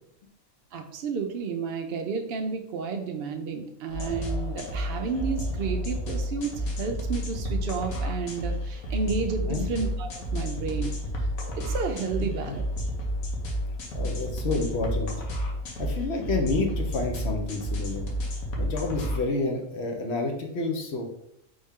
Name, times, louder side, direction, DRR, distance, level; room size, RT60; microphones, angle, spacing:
voice 1, 0.7-11.3 11.5-12.6, right 5 dB, 65° right, 3 dB, 0.6 m, -32 dB
sound 1, 3.9-19.2, equal, 90° left, 1.4 m, -31 dB
voice 2, 12.2-12.6 13.9-15.1 15.8-18.1 18.6-21.1, left 3 dB, 60° left, 2 dB, 0.9 m, -29 dB
4.2 x 3.5 x 3.5 m, 0.75 s
omnidirectional pair, 1.4 m